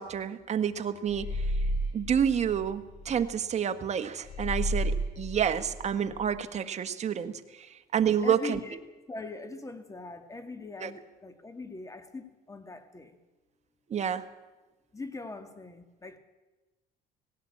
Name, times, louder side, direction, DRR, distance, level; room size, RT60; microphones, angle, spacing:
voice 1, 0.0-1.5 1.9-7.7 7.9-8.6 10.8-10.9 13.9-14.3, right 8 dB, 40° right, 8 dB, 1.5 m, -29 dB
sound 1, 1.1-3.2 4.2-6.3, equal, 40° left, 5.8 m, -32 dB
voice 2, 8.2-8.8 9.1-13.2 14.9-16.2, left 3 dB, 20° left, 9 dB, 2.3 m, -41 dB
18.5 x 17.0 x 8.6 m, 1.1 s
cardioid pair, 110°, 17 cm